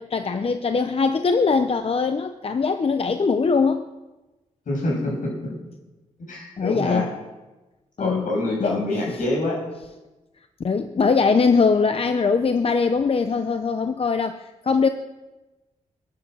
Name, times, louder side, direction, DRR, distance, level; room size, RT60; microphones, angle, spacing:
voice 1, 0.0-3.9 6.6-7.1 8.0-8.3 8.6-8.8 9.1-9.2 10.6-14.9, left 5 dB, 45° left, 8 dB, 0.8 m, -21 dB
voice 2, 4.7-5.3 6.3-7.1 8.0-9.6, left 2 dB, 75° left, -1 dB, 6.8 m, -25 dB
21.5 x 9.6 x 6.4 m, 1.1 s
cardioid pair, 95°, 14 cm